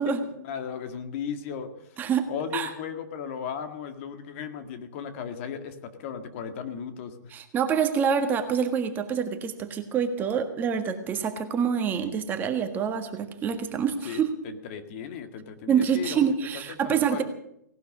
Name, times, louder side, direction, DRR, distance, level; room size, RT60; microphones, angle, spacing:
voice 1, 0.0-1.9 2.3-7.3 14.0-16.2 16.5-17.2, left 7 dB, 40° left, 8 dB, 2.0 m, -36 dB
voice 2, 7.3-14.3 15.7-17.2, right 7 dB, 20° right, 7 dB, 1.6 m, -26 dB
18.0 x 12.0 x 6.7 m, 0.77 s
hypercardioid pair, 145°, 10 cm